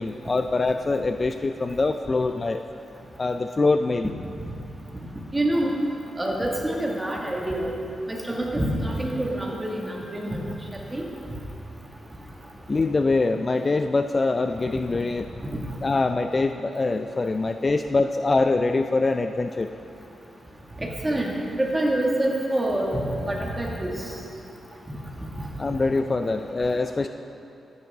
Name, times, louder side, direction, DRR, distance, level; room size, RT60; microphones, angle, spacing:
voice 1, 0.0-2.6 3.2-4.1 12.7-15.3 15.8-19.7 25.6-27.1, left 3 dB, 30° left, 7 dB, 0.3 m, -24 dB
voice 2, 5.3-5.8 6.2-7.7 8.1-10.4 10.9-11.1 20.8-21.3 21.6-24.1, right 1 dB, 15° right, -2 dB, 1.8 m, -26 dB
14.0 x 9.6 x 3.6 m, 2.7 s
cardioid pair, 95°, 0 cm